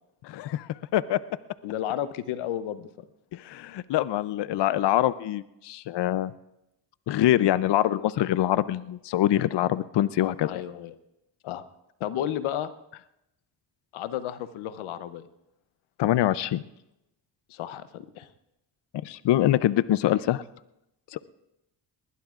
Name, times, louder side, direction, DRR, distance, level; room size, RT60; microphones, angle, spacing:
voice 1, 0.2-1.2 3.4-6.3 7.1-10.6 16.0-16.6 19.0-20.4, left 13 dB, 60° left, 16 dB, 0.6 m, -24 dB
voice 2, 1.6-2.9 10.4-10.9 11.4-11.6 12.0-12.7 13.9-15.3 17.5-18.3, left 11 dB, 90° left, 13 dB, 0.8 m, -32 dB
20.5 x 19.5 x 2.5 m, 0.88 s
supercardioid pair, 60°, 47 cm